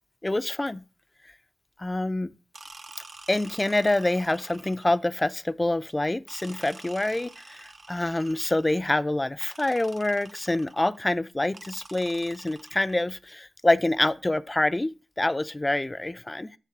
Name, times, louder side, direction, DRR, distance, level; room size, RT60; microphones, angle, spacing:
voice 1, 0.2-0.8 1.8-2.4 3.3-16.6, left 1 dB, 25° left, 0.5 m, -26 dB
sound 1, 2.5-5.1 6.3-8.9 9.4-11.0 11.5-13.2, right 3 dB, 50° right, 0.6 m, -48 dB
9.3 x 3.2 x 4.7 m
cardioid pair, 40°, 0 cm